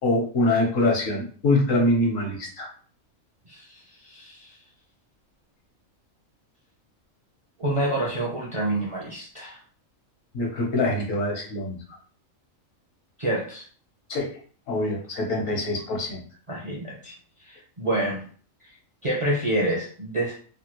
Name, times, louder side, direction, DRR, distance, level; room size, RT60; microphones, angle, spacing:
voice 1, 0.0-2.7 10.3-11.8 14.1-14.4 14.7-16.2, left 2 dB, 70° left, 0 dB, 1.3 m, -24 dB
voice 2, 4.0-4.6 7.6-9.6 13.2-13.6 16.5-17.2 17.4-18.2 19.0-20.4, right 1 dB, 35° right, -3 dB, 0.5 m, -27 dB
3.4 x 2.3 x 2.9 m, 0.43 s
omnidirectional pair, 1.4 m